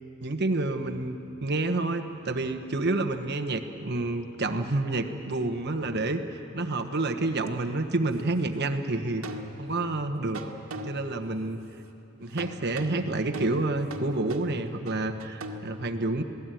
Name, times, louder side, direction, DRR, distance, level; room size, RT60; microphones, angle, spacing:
voice 1, 0.2-9.2 9.6-10.4 10.8-11.6 12.2-16.2, right 2 dB, 50° right, 7 dB, 1.3 m, -29 dB
sound 1, 7.5-7.6 9.2-9.9 10.3-11.3 12.4-15.7, right 1 dB, 85° right, 1.8 m, -39 dB
26.5 x 18.5 x 9.2 m, 2.9 s
head